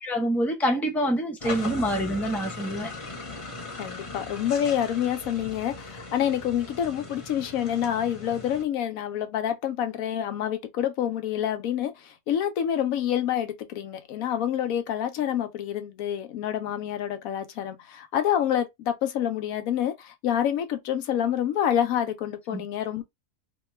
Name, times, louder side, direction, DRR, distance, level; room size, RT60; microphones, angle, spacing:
voice 1, 0.0-2.9 22.5-22.6, equal, ahead, 0.5 m, -26 dB
sound 1, 1.4-8.6, left 3 dB, 30° left, 0.9 m, -38 dB
voice 2, 3.8-23.0, left 10 dB, 85° left, 1.1 m, -27 dB
2.9 x 2.2 x 3.1 m
omnidirectional pair, 1.4 m